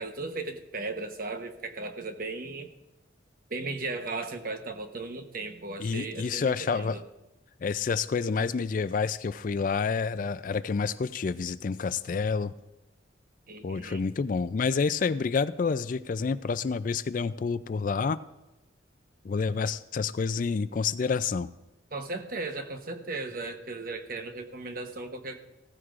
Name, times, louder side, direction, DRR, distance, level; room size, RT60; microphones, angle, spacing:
voice 1, 0.0-2.7 3.5-7.0 13.5-14.0 21.9-25.5, right 3 dB, 50° right, 6 dB, 1.0 m, -36 dB
voice 2, 5.8-7.0 7.6-12.5 13.6-18.2 19.2-21.5, left 5 dB, 45° left, 15 dB, 0.3 m, -28 dB
16.0 x 14.0 x 2.5 m, 1.0 s
head